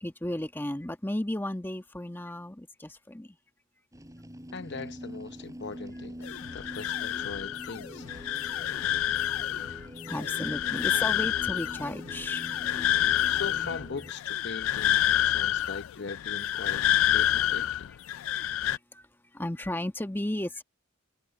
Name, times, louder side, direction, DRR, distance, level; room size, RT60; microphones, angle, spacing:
voice 1, 0.0-3.3 9.7-12.5 18.3-18.5 18.9-19.1 19.3-20.6, left 1 dB, 10° left, 1.3 m, -34 dB
sound 1, 3.9-14.1, equal, 15° right, 5.0 m, -44 dB
voice 2, 4.5-8.1 13.3-17.9, left 4 dB, 60° left, 0.8 m, -40 dB
sound 2, 6.2-18.8, left 12 dB, 80° left, 0.3 m, -28 dB
head